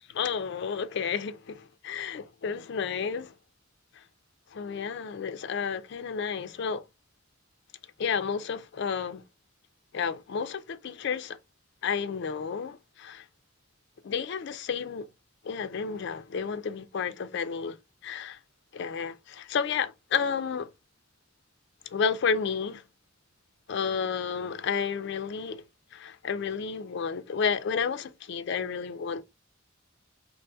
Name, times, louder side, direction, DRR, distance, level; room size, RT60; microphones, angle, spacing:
voice 1, 0.1-3.3 4.0-4.1 4.5-6.8 8.0-9.2 9.9-11.4 11.8-13.3 14.0-15.1 15.4-17.8 18.0-18.4 18.7-20.7 21.9-22.8 23.7-25.6 25.9-29.2, left 6 dB, 60° left, 0.4 m, -31 dB
4.0 x 3.1 x 2.2 m
head